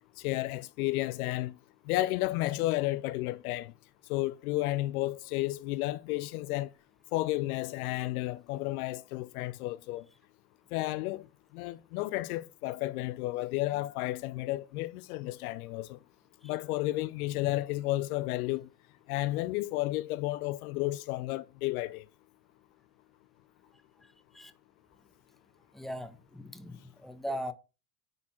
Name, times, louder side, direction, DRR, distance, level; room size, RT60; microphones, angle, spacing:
voice 1, 0.2-1.5 1.9-3.7 4.1-6.7 7.1-10.0 10.7-11.3 11.5-16.0 16.4-18.7 19.1-22.0, left 18 dB, 65° left, 0.6 m, -32 dB
voice 2, 25.7-27.5, equal, ahead, 1.1 m, -39 dB
9.9 x 4.2 x 4.3 m
hypercardioid pair, 85°, 48 cm